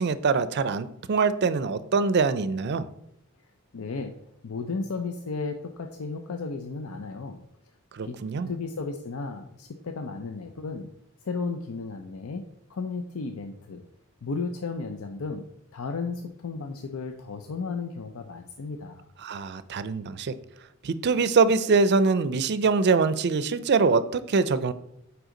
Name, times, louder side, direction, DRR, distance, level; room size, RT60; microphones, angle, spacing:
voice 1, 0.0-2.9 7.9-8.5 19.2-20.3 20.8-24.7, right 4 dB, 55° right, 14 dB, 0.4 m, -23 dB
voice 2, 3.7-7.4 8.0-10.9 11.2-12.4 12.7-13.8 14.2-15.4 15.7-19.1, left 4 dB, 90° left, 6 dB, 0.5 m, -34 dB
7.9 x 4.8 x 3.8 m, 0.78 s
head